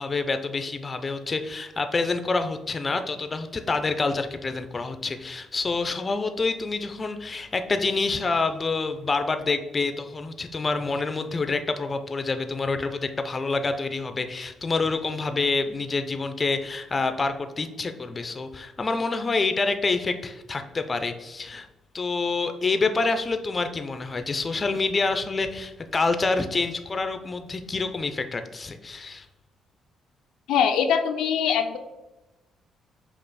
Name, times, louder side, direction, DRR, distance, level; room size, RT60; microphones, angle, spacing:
voice 1, 0.0-21.7 21.9-29.3, left 3 dB, 30° left, 8 dB, 0.5 m, -27 dB
voice 2, 30.5-31.8, left 7 dB, 85° left, 5 dB, 0.4 m, -22 dB
5.4 x 2.5 x 4.0 m, 1.0 s
cardioid pair, 90°, 0 cm